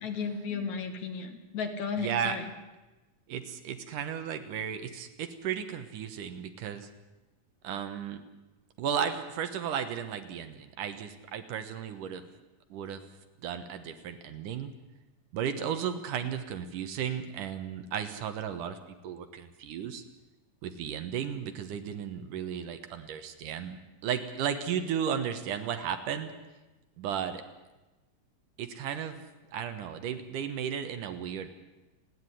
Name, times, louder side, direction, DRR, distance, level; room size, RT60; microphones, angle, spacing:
voice 1, 0.0-2.4, left 5 dB, 60° left, 6 dB, 2.9 m, -34 dB
voice 2, 2.0-2.4 3.3-6.9 7.6-8.2 8.8-12.2 12.7-13.0 13.4-14.7 15.3-18.8 19.0-20.0 20.6-23.8 24.0-26.3 27.0-27.4 28.6-29.2 29.5-31.5, right 8 dB, 75° right, 8 dB, 2.8 m, -34 dB
29.5 x 9.9 x 9.9 m, 1.1 s
omnidirectional pair, 3.9 m